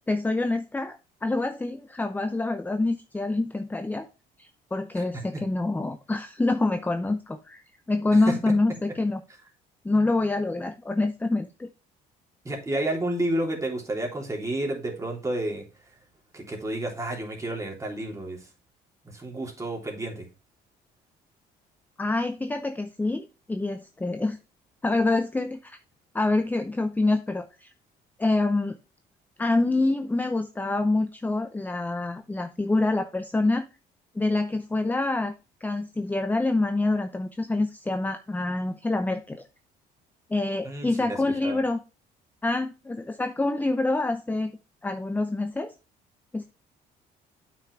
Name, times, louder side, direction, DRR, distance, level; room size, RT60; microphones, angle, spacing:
voice 1, 0.1-4.1 4.4-7.6 7.9-9.2 9.8-11.7 22.0-24.4 24.8-25.8 26.1-27.7 28.2-28.7 29.4-33.7 34.1-35.3 35.6-39.4 40.3-41.8 42.4-44.5 44.8-45.7 46.3-46.4, left 2 dB, 10° left, 8 dB, 0.7 m, -26 dB
voice 2, 12.4-15.6 16.3-18.4 19.0-20.2 40.6-41.2 41.4-41.6, right 1 dB, 20° right, 0 dB, 3.2 m, -30 dB
8.6 x 5.9 x 3.3 m, 0.31 s
cardioid pair, 110°, 17 cm